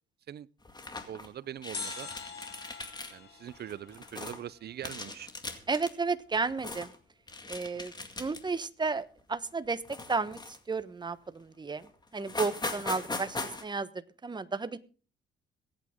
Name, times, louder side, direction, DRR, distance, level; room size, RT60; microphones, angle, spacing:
sound 1, 0.7-1.3 1.6-3.1 3.5-4.4 4.8-5.9 6.3-7.0 7.3-8.6 9.0-9.2 9.9-10.8 11.4-11.5 11.8-11.9 12.2-13.6, left 2 dB, 20° left, 2.1 m, -40 dB
voice 1, 1.1-2.1 3.1-5.3, right 10 dB, 55° right, 0.6 m, -42 dB
sound 2, 1.7-4.8 5.1-5.2, left 5 dB, 55° left, 3.6 m, -44 dB
voice 2, 5.7-6.9 7.5-7.9 8.2-9.8 10.1-10.4 10.7-11.9 12.1-13.4 13.6-13.9 14.2-14.8, right 4 dB, 20° right, 1.1 m, -32 dB
22.0 x 8.8 x 3.6 m
cardioid pair, 90°, 20 cm